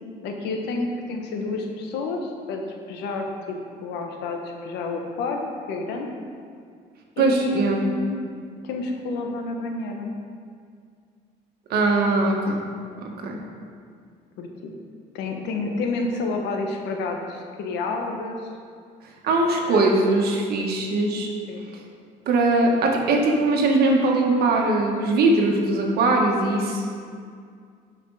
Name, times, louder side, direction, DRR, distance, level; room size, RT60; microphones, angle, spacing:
voice 1, 0.2-2.6 2.9-3.6 3.8-6.1 7.2-8.2 8.6-10.1 14.4-14.7 15.1-18.5 19.6-19.9 21.5-21.6, left 3 dB, 90° left, 2 dB, 1.3 m, -29 dB
voice 2, 7.2-7.8 11.7-12.6 13.0-13.4 19.2-21.3 22.3-26.8, right 2 dB, 70° right, 0 dB, 1.6 m, -21 dB
12.0 x 5.3 x 4.9 m, 2.2 s
cardioid pair, 110°, 17 cm